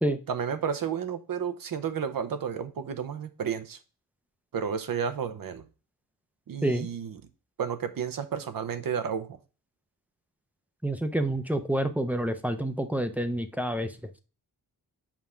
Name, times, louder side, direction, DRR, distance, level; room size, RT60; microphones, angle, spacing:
voice 1, 0.3-3.8 4.5-5.6 6.5-7.2 7.6-9.4, right 7 dB, 60° right, 0.9 m, -32 dB
voice 2, 10.8-13.9, right 1 dB, 5° right, 0.6 m, -28 dB
7.3 x 3.5 x 5.7 m
wide cardioid pair, 135°, 38 cm